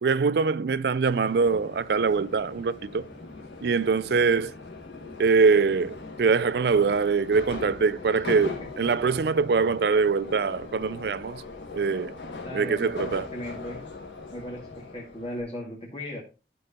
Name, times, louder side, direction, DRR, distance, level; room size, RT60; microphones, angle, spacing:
voice 1, 0.0-3.0 3.6-4.5 5.2-11.4 11.7-12.1 12.5-13.3, right 5 dB, 65° right, 0.4 m, -23 dB
Subway metro underground, 1.1-15.4, left 3 dB, 90° left, 2.0 m, -40 dB
voice 2, 8.1-8.7 12.4-13.8 14.3-16.2, left 1 dB, 30° left, 2.0 m, -38 dB
12.5 x 5.4 x 2.8 m
head